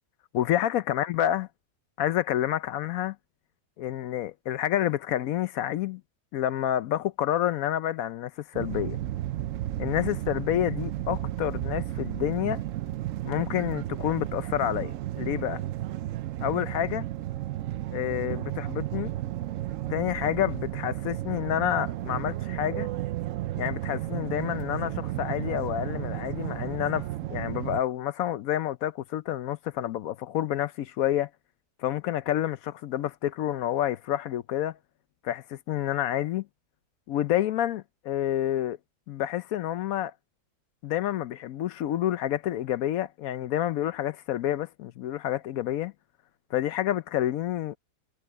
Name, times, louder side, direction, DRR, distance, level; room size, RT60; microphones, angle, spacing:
voice 1, 0.3-1.5 2.0-3.2 3.8-6.0 6.3-9.0 9.8-12.6 13.2-15.6 16.4-17.1 17.9-19.1 19.9-22.9 23.6-31.3 31.8-34.8 35.2-36.5 37.1-38.8 39.1-40.1 40.8-45.9 46.5-47.8, left 12 dB, 70° left, 0.9 m, -29 dB
sound 1, 8.5-27.8, right 14 dB, 65° right, 0.8 m, -33 dB
omnidirectional pair, 1.7 m